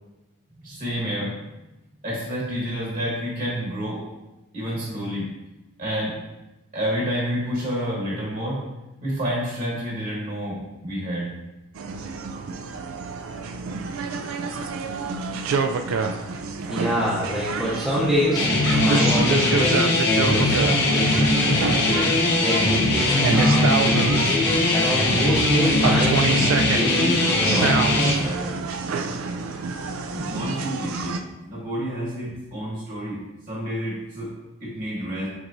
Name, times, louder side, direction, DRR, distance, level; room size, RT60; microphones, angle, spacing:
voice 1, 0.6-1.3 2.0-4.0 4.5-5.3 5.8-6.1 6.7-8.6 9.0-11.3 30.1-31.2 31.4-33.2 33.5-34.3 34.6-35.3, equal, 40° right, -5 dB, 1.2 m, -29 dB
sound 1, 11.8-31.2, right 4 dB, 70° right, 0.3 m, -28 dB
voice 2, 16.7-18.5 18.8-22.2 22.4-24.4 24.7-28.5, equal, 5° right, -9 dB, 0.6 m, -27 dB
sound 2, 18.4-28.1, left 2 dB, 50° left, 0.7 m, -20 dB
6.1 x 3.0 x 2.6 m, 1.0 s
head